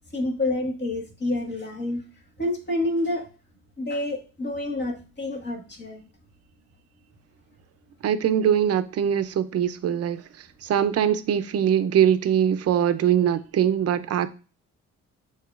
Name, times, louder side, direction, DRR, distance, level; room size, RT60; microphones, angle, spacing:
voice 1, 0.1-2.0 2.4-3.3 3.8-6.0, left 1 dB, 35° left, 1.6 m, -28 dB
voice 2, 8.0-10.2 10.6-14.3, right 9 dB, 55° right, 0.6 m, -22 dB
7.5 x 2.9 x 2.4 m
cardioid pair, 90°, 30 cm